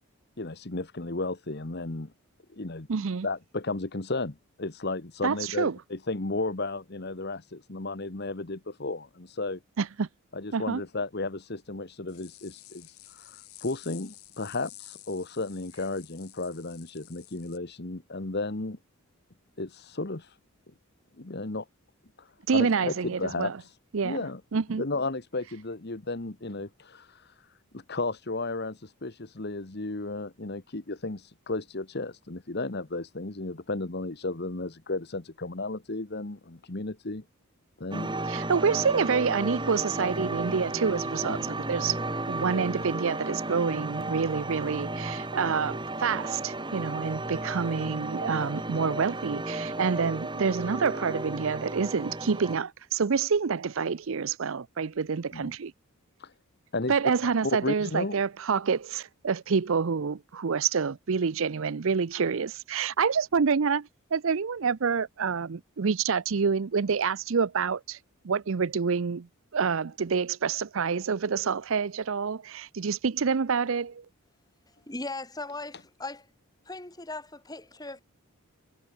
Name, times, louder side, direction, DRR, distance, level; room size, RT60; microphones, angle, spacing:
voice 1, 0.4-2.1 2.5-2.9 3.2-9.6 10.3-12.9 13.1-18.8 19.6-20.3 21.2-21.6 22.2-22.3 22.5-22.9 23.2-23.5 24.0-24.4 24.8-27.2 27.7-37.2 37.8-38.1 41.3-41.4 55.3-55.6 56.2-56.3 56.7-56.9 57.4-58.1, left 2 dB, 45° left, 1.2 m, -34 dB
voice 2, 2.9-3.3 5.2-5.8 9.8-10.1 10.5-10.8 22.5-23.6 23.9-24.3 24.5-24.8 38.3-42.0 42.3-55.7 56.9-68.0 68.2-69.3 69.5-74.0, right 5 dB, 60° right, 0.5 m, -27 dB
sound 1, 12.1-17.6, left 17 dB, 80° left, 3.9 m, -51 dB
sound 2, 37.9-52.6, right 2 dB, 20° right, 2.6 m, -34 dB
voice 3, 74.9-76.3 76.7-78.0, left 2 dB, 15° left, 2.6 m, -38 dB
head